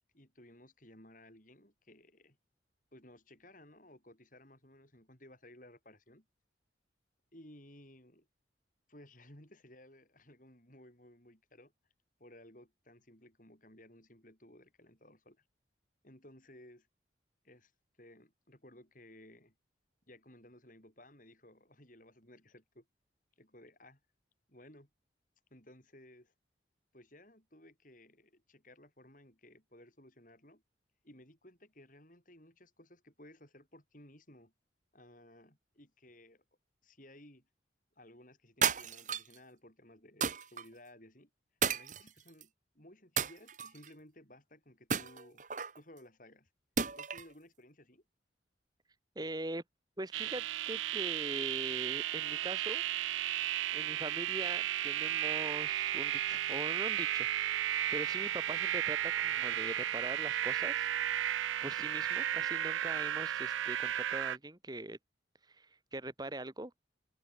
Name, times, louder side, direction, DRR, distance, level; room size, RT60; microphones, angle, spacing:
voice 1, 0.1-2.4 2.9-6.2 7.3-8.3 8.9-11.7 12.2-15.4 16.0-16.9 17.4-17.7 18.0-19.5 20.1-22.9 23.4-24.0 24.5-24.9 25.5-26.3 26.9-30.6 31.0-34.5 34.9-36.4 36.8-37.5 38.0-41.3 41.7-45.4 45.7-46.5 47.0-48.0, left 1 dB, 45° left, 7.8 m, -58 dB
sound 1, 38.6-39.4 40.2-40.6 41.6-42.4 43.2-43.9 44.9-45.8 46.8-47.3, right 6 dB, 40° right, 1.6 m, -33 dB
voice 2, 49.1-49.6 50.0-52.8 53.7-60.9 61.1-65.0 65.5-66.7, right 1 dB, 20° right, 1.4 m, -42 dB
sound 2, 50.1-64.4, right 12 dB, 85° right, 0.4 m, -34 dB
open air
head